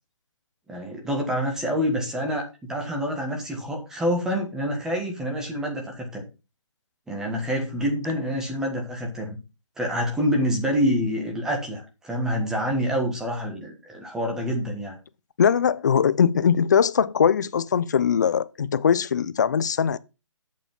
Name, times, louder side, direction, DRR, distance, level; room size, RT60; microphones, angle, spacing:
voice 1, 0.7-6.2 7.1-9.4 9.8-15.0, equal, 5° right, 1.4 m, -27 dB
voice 2, 15.4-20.0, left 7 dB, 35° left, 0.6 m, -21 dB
8.4 x 6.9 x 5.5 m
hypercardioid pair, 170°, 16 cm